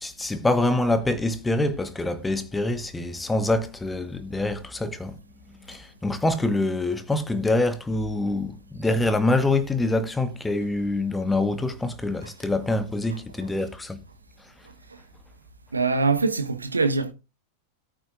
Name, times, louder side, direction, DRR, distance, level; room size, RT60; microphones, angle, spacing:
voice 1, 0.0-5.2 5.7-14.0 14.4-14.5, left 2 dB, 10° left, 1.2 m, -25 dB
voice 2, 15.7-17.1, right 4 dB, 80° right, 1.1 m, -23 dB
17.0 x 9.0 x 2.5 m
figure-of-eight pair, 90°, 0 cm